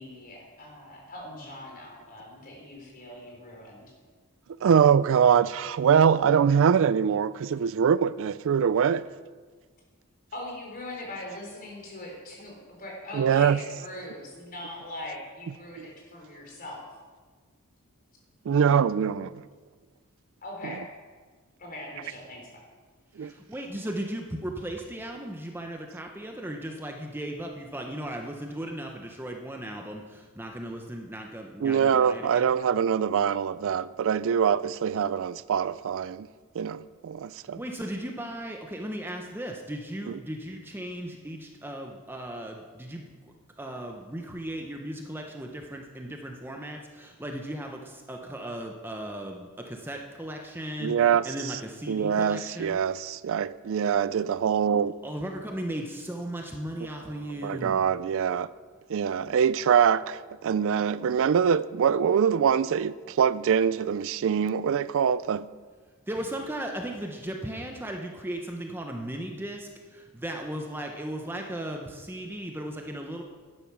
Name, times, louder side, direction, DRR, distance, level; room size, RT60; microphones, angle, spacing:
voice 1, 0.0-3.9 10.3-16.9 20.4-20.9 21.6-22.5, left 1 dB, 40° left, 4.0 m, -41 dB
voice 2, 4.6-9.0 13.1-13.6 15.8-15.9 18.5-19.4 20.6-20.8 23.2-23.3 31.6-36.3 36.5-37.6 40.1-40.2 50.8-51.6 51.9-54.9 56.8-58.5 58.9-65.5, right 7 dB, 65° right, 0.4 m, -24 dB
voice 3, 23.2-32.5 37.6-43.1 43.6-50.9 51.2-52.8 55.0-57.8 66.1-73.2, right 1 dB, 10° right, 0.9 m, -36 dB
12.0 x 10.5 x 6.1 m
head